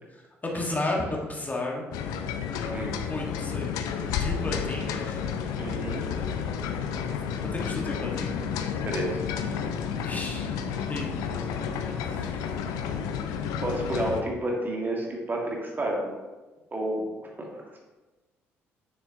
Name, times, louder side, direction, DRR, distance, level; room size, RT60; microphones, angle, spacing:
voice 1, 0.1-1.8 3.1-3.7 4.0-5.2 7.1-8.6 10.0-10.6 10.9-11.6 11.9-12.6, left 2 dB, 25° left, -1 dB, 1.5 m, -34 dB
sound 1, 1.9-14.2, left 7 dB, 60° left, 0.5 m, -31 dB
voice 2, 5.6-6.0 8.8-9.2 13.6-16.2 16.7-17.0 17.4-17.5, right 1 dB, 25° right, -1 dB, 1.8 m, -30 dB
6.8 x 6.6 x 2.8 m, 1.2 s
figure-of-eight pair, 45°, 7 cm